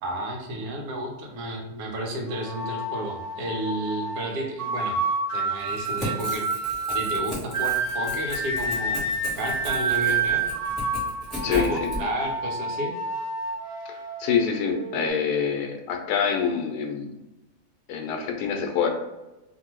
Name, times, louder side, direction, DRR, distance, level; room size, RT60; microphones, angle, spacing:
voice 1, 0.0-5.0 5.3-6.5 6.9-10.4 11.5-13.0, right 1 dB, 75° right, 1 dB, 1.1 m, -32 dB
sound 1, 2.3-15.1, right 3 dB, 55° right, 1.2 m, -29 dB
Crackle / Tearing, 5.6-12.0, equal, ahead, 1.2 m, -36 dB
voice 2, 11.4-11.9 13.9-17.1 17.9-18.9, left 6 dB, 90° left, 3 dB, 1.1 m, -26 dB
2.6 x 2.6 x 2.9 m, 1.0 s
omnidirectional pair, 1.6 m